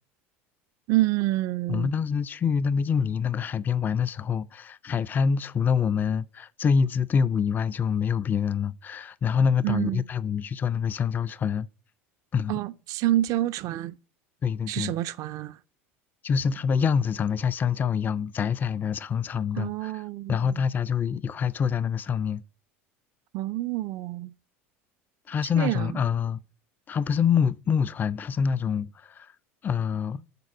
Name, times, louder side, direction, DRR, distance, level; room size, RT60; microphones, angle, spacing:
voice 1, 0.9-1.9 9.6-10.0 12.5-13.9 14.7-15.6 19.6-20.6 23.3-24.3 25.6-26.0, right 15 dB, 55° right, 0.4 m, -28 dB
voice 2, 1.7-11.7 12.3-12.6 14.4-14.9 16.2-20.0 20.3-22.4 25.3-26.4 26.9-29.3 29.6-30.2, left 6 dB, 25° left, 0.3 m, -26 dB
6.7 x 4.1 x 5.9 m
hypercardioid pair, 90°, 7 cm